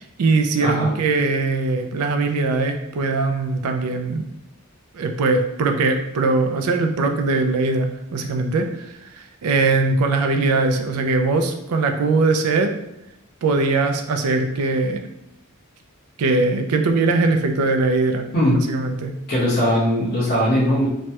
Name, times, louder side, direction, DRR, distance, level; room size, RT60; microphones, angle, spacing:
voice 1, 0.0-4.3 4.9-8.7 9.4-12.7 13.4-15.1 16.2-18.3 18.7-19.1, right 3 dB, 90° right, 5 dB, 0.4 m, -21 dB
voice 2, 0.6-0.9 18.3-18.6 19.3-20.9, equal, 50° left, -10 dB, 1.1 m, -19 dB
3.1 x 2.2 x 2.8 m, 0.88 s
head